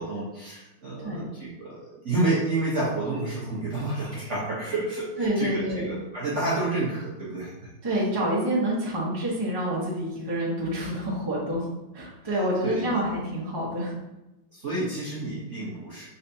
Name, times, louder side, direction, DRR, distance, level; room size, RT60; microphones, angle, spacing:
voice 1, 0.0-7.7 12.2-13.0 14.5-16.1, right 2 dB, 50° right, -8 dB, 1.0 m, -30 dB
voice 2, 5.2-5.9 7.8-11.7 11.9-13.9, right 1 dB, 20° right, -6 dB, 0.7 m, -27 dB
5.5 x 3.3 x 2.7 m, 0.98 s
omnidirectional pair, 2.3 m